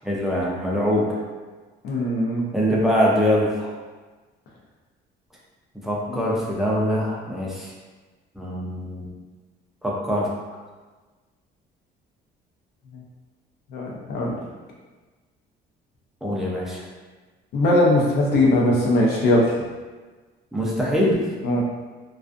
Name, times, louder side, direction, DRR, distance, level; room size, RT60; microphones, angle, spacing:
voice 1, 0.0-1.2 2.5-3.7 5.8-7.7 8.4-9.1 9.8-10.3 16.2-16.8 20.5-21.2, equal, ahead, -5 dB, 0.3 m, -23 dB
voice 2, 1.8-2.4 6.1-6.2 13.7-14.3 17.5-19.4 21.4-21.6, left 1 dB, 60° left, -3 dB, 0.6 m, -20 dB
2.3 x 2.3 x 2.4 m, 1.3 s
cardioid pair, 170°, 18 cm